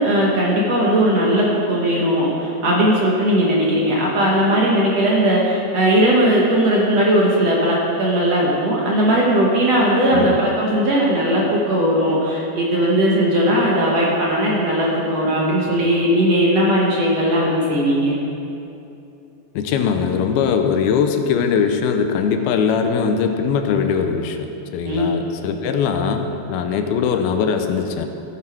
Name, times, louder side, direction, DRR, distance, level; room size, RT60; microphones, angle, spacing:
voice 1, 0.0-18.2 24.9-25.2, equal, 55° right, -4 dB, 2.0 m, -18 dB
voice 2, 10.1-10.4 19.5-28.1, left 6 dB, 85° left, 6 dB, 2.6 m, -21 dB
16.0 x 9.5 x 4.5 m, 2.7 s
omnidirectional pair, 4.4 m